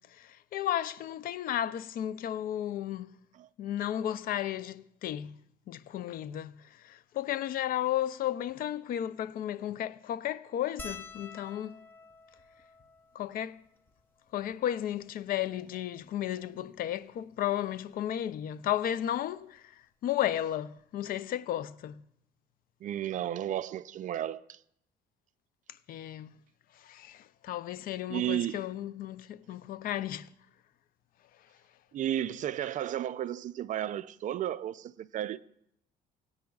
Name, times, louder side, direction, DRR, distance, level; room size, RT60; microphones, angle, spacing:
voice 1, 0.1-3.2 3.6-5.4 5.7-11.8 13.1-13.6 14.3-22.0 25.9-26.3 26.8-30.3, left 11 dB, 60° left, 0.4 m, -34 dB
sound 1, 10.8-15.4 16.1-16.2 16.4-16.6 17.9-18.1 19.6-19.7 19.9-20.1, left 3 dB, 10° left, 0.7 m, -50 dB
voice 2, 22.8-24.6 28.1-28.6 31.9-35.4, right 11 dB, 50° right, 0.4 m, -33 dB
18.5 x 9.5 x 2.3 m
cardioid pair, 110°, 17 cm